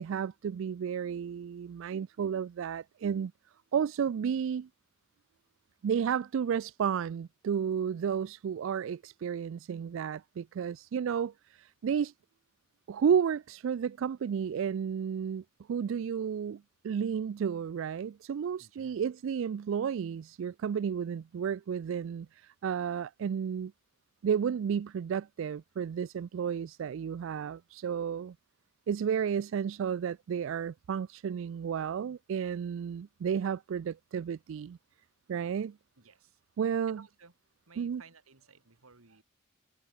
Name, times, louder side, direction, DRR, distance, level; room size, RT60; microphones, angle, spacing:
voice 1, 0.0-3.3 3.7-4.7 5.8-12.1 12.9-23.7 24.2-28.3 28.9-34.8 35.3-35.8 36.6-37.0 37.8-38.0, right 7 dB, 65° right, 0.3 m, -32 dB
voice 2, 18.6-19.0 36.0-36.4 36.9-37.3 37.7-39.2, right 5 dB, 90° right, 2.2 m, -57 dB
head